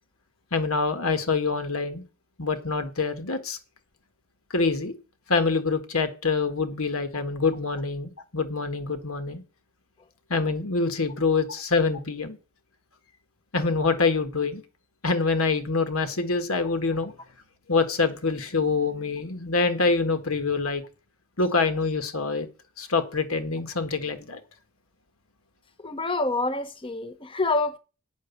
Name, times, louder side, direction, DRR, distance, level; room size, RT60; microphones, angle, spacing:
voice 1, 0.5-2.0 2.4-3.6 4.5-4.9 5.3-9.4 10.3-12.4 13.5-14.6 15.0-17.1 17.7-20.8 21.4-22.5 22.8-24.4, left 4 dB, 75° left, 1.5 m, -25 dB
voice 2, 25.8-27.8, left 3 dB, 25° left, 0.9 m, -27 dB
8.7 x 6.4 x 8.0 m
head